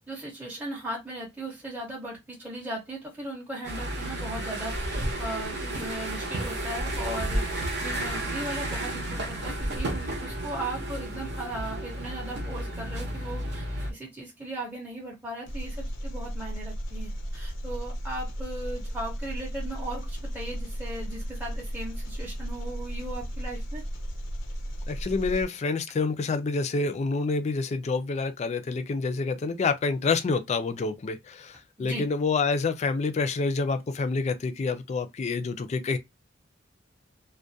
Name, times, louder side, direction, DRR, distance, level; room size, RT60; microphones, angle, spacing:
voice 1, 0.1-23.8 31.8-32.1, right 1 dB, 10° right, 0.6 m, -37 dB
sound 1, 3.6-13.9, right 1 dB, 60° right, 0.7 m, -32 dB
Engine, 15.5-25.4, equal, 90° left, 0.6 m, -35 dB
voice 2, 24.9-36.0, left 4 dB, 35° left, 0.3 m, -28 dB
2.3 x 2.1 x 2.6 m
head